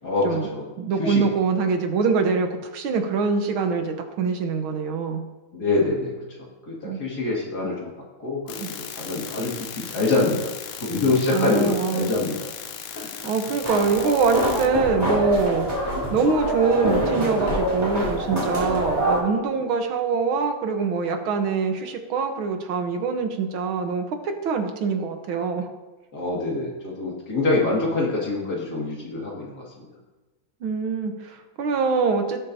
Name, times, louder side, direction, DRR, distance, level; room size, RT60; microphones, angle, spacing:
voice 1, 0.0-0.7 1.0-1.2 5.5-6.1 6.4-7.9 8.2-10.5 10.8-12.5 12.9-13.2 26.1-29.6, left 3 dB, 50° left, -3 dB, 2.7 m, -25 dB
voice 2, 0.8-5.2 6.8-7.0 8.6-8.7 11.3-12.1 13.2-15.7 16.1-25.7 30.6-32.4, right 5 dB, 85° right, 5 dB, 1.9 m, -24 dB
sound 1, 8.5-14.7, left 8 dB, 80° left, 1.5 m, -37 dB
sound 2, 13.6-19.2, right 1 dB, 15° right, 3.0 m, -25 dB
18.0 x 7.7 x 2.7 m, 1.2 s
omnidirectional pair, 2.2 m